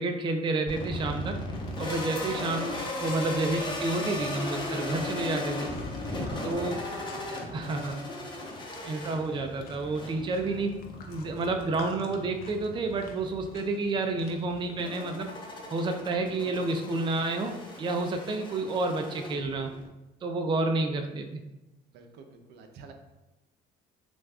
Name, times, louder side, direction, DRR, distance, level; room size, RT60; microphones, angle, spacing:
voice 1, 0.0-1.4 1.8-5.7 6.4-6.8 7.5-8.0 8.8-15.3 15.7-19.7 20.2-21.4, right 2 dB, 30° right, 5 dB, 0.4 m, -30 dB
sound 1, 0.7-19.9, left 2 dB, 25° left, 0.9 m, -37 dB
sound 2, 1.5-15.5, left 4 dB, 60° left, 0.6 m, -51 dB
voice 2, 6.0-6.7 7.0-7.6 21.9-22.9, right 4 dB, 75° right, 5 dB, 0.6 m, -48 dB
5.9 x 2.3 x 2.3 m, 1.0 s
cardioid pair, 110°, 17 cm